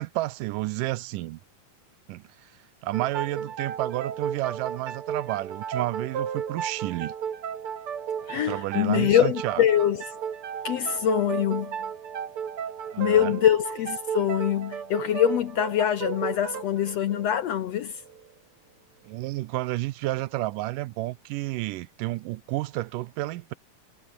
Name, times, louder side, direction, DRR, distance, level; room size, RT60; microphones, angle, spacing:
voice 1, 0.0-1.4 2.1-2.2 2.8-7.1 8.3-9.6 12.9-13.4 19.0-23.5, right 18 dB, 85° right, 2.2 m, -31 dB
sound 1, 2.9-18.3, right 8 dB, 45° right, 2.4 m, -34 dB
voice 2, 8.3-10.0 10.6-11.8 13.0-18.0, left 11 dB, 70° left, 1.7 m, -24 dB
omnidirectional pair, 3.9 m